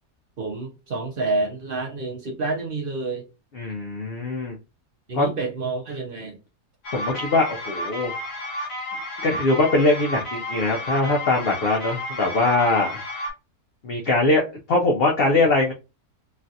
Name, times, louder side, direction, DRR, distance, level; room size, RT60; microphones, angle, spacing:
voice 1, 0.4-3.2 5.1-6.4, right 3 dB, 55° right, 0.6 m, -28 dB
voice 2, 3.5-4.6 5.1-5.3 6.9-8.1 9.2-13.0 13.8-14.4 14.7-15.7, left 2 dB, 60° left, 0.6 m, -21 dB
sound 1, 6.8-13.3, left 1 dB, 45° left, 1.1 m, -32 dB
3.2 x 2.4 x 2.6 m
omnidirectional pair, 1.7 m